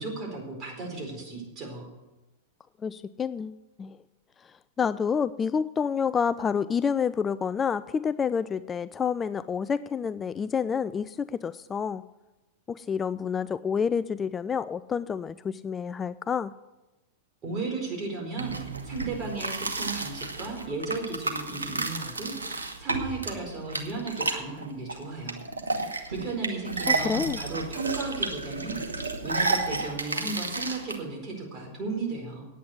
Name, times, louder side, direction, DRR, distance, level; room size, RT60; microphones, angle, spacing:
voice 1, 0.0-1.9 17.4-25.4 26.1-32.5, right 3 dB, 35° right, 1 dB, 4.5 m, -35 dB
voice 2, 2.8-4.0 4.8-12.0 12.7-16.5 26.9-27.4, left 6 dB, 20° left, 15 dB, 0.3 m, -28 dB
sound 1, 18.4-31.0, right 3 dB, 90° right, 1.2 m, -31 dB
9.3 x 8.7 x 8.1 m, 1.1 s
hypercardioid pair, 100°, 0 cm